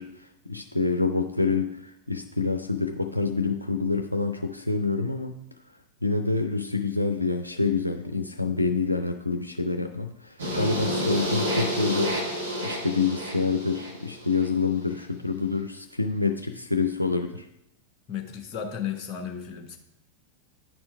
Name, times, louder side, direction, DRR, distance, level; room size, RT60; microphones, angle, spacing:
voice 1, 0.0-5.4 6.0-17.5, left 4 dB, 85° left, 4 dB, 0.5 m, -27 dB
sound 1, 10.4-14.5, equal, 70° right, 1.7 m, -30 dB
voice 2, 18.1-19.8, left 8 dB, 35° left, 3 dB, 1.3 m, -34 dB
9.9 x 4.4 x 4.8 m, 0.79 s
figure-of-eight pair, 90°, 0 cm